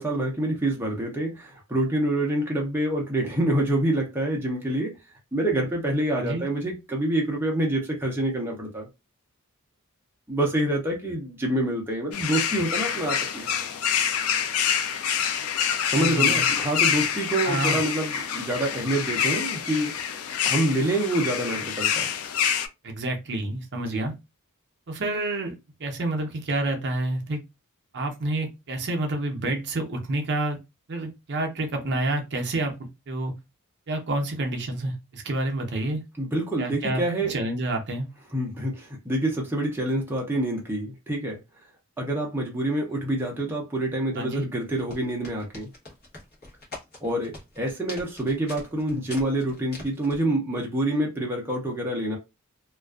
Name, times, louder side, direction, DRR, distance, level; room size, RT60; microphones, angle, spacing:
voice 1, 0.0-4.9 5.3-8.9 10.3-13.5 15.9-19.9 20.4-22.1 23.9-24.0 36.2-37.3 38.3-41.4 42.0-45.7 47.0-52.2, right 1 dB, 10° right, 0.5 m, -26 dB
voice 2, 6.2-6.5 16.0-16.4 17.4-17.8 22.8-24.1 24.9-25.5 25.8-27.4 27.9-30.6 30.9-32.8 33.1-33.3 33.9-36.0 36.6-38.1 44.2-44.4, right 2 dB, 50° right, 0.6 m, -28 dB
sound 1, 12.1-22.7, left 8 dB, 70° left, 0.4 m, -26 dB
sound 2, 44.7-50.3, left 2 dB, 45° left, 0.9 m, -43 dB
2.4 x 2.2 x 2.3 m
head